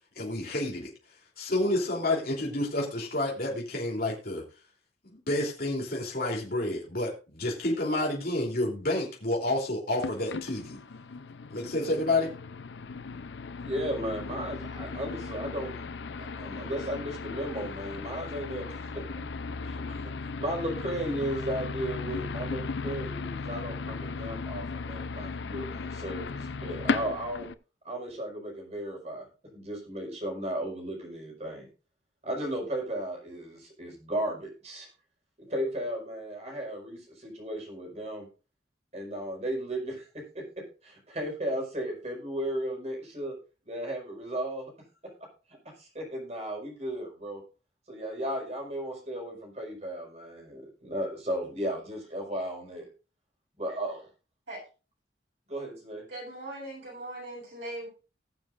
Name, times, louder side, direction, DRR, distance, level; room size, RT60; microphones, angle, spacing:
voice 1, 0.1-0.9 1.4-4.4 5.1-10.8 11.5-12.3, left 1 dB, 50° left, -2 dB, 3.3 m, -29 dB
sound 1, 10.0-27.5, left 4 dB, 70° left, 0.5 m, -36 dB
voice 2, 13.6-15.8 16.2-19.0 19.6-27.5 27.8-29.2 29.5-31.7 32.2-34.9 35.4-38.3 38.9-43.3 43.6-44.7 45.8-47.4 47.9-52.9 53.6-54.0 55.5-56.0, right 1 dB, 35° right, 0 dB, 5.0 m, -35 dB
voice 3, 56.1-57.9, right 1 dB, 75° right, -4 dB, 7.3 m, -40 dB
20.5 x 7.2 x 2.5 m, 0.33 s
head